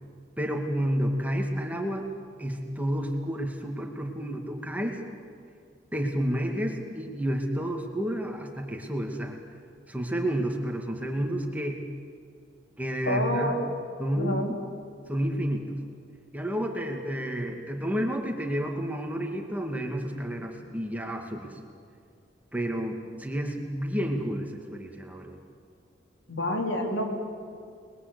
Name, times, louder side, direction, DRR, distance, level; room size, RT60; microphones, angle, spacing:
voice 1, 0.4-2.1 2.4-5.0 5.9-9.3 9.9-11.8 12.8-13.6 14.0-14.6 15.1-15.7 16.3-21.5 22.5-25.4, equal, 10° right, 2 dB, 2.2 m, -30 dB
voice 2, 13.1-13.6 14.2-14.5 26.3-27.1, left 1 dB, 85° left, 1 dB, 4.2 m, -28 dB
30.0 x 21.0 x 8.3 m, 2.2 s
head